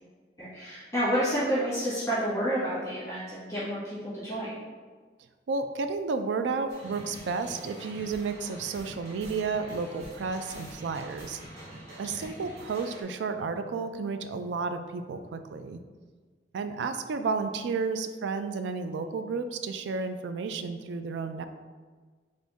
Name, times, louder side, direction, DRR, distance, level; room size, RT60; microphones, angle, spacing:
voice 1, 0.4-4.6 12.0-12.3, equal, 20° left, -11 dB, 1.4 m, -30 dB
voice 2, 5.5-11.4 12.0-15.8 16.5-21.4, right 4 dB, 80° right, 8 dB, 0.3 m, -32 dB
sound 1, 6.7-13.0, right 1 dB, 65° right, 1.0 m, -46 dB
3.5 x 2.5 x 4.0 m, 1.5 s
head